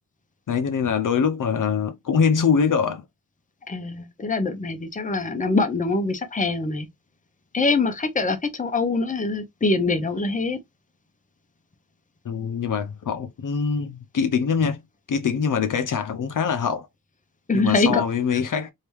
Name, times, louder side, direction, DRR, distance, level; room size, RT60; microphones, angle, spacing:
voice 1, 0.5-3.0 12.3-14.8 15.1-16.9 17.5-18.7, left 6 dB, 60° left, 0.6 m, -23 dB
voice 2, 3.7-6.9 7.5-10.6 17.5-18.0 18.3-18.4, left 3 dB, 25° left, 0.7 m, -24 dB
3.4 x 2.8 x 3.0 m
wide cardioid pair, 135°, 35 cm